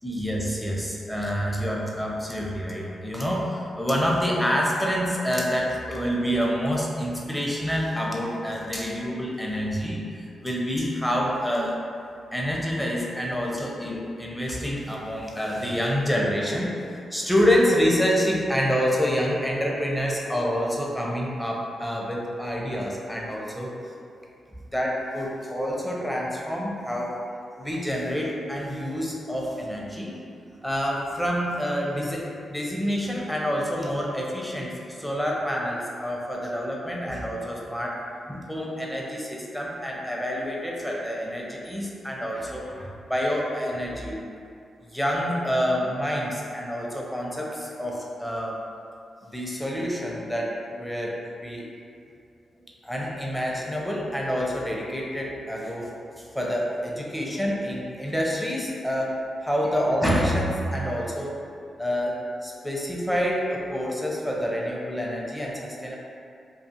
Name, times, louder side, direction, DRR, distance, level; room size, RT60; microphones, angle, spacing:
voice 1, 0.0-11.8 12.3-23.7 24.7-27.1 27.6-30.2 30.6-38.0 38.3-44.2 44.9-48.6 49.3-51.2 51.4-51.7 52.8-55.9 56.3-61.4 61.8-62.2 62.4-66.0, equal, 5° left, -3 dB, 0.6 m, -27 dB
2.4 x 2.3 x 2.8 m, 2.4 s
supercardioid pair, 45°, 0 cm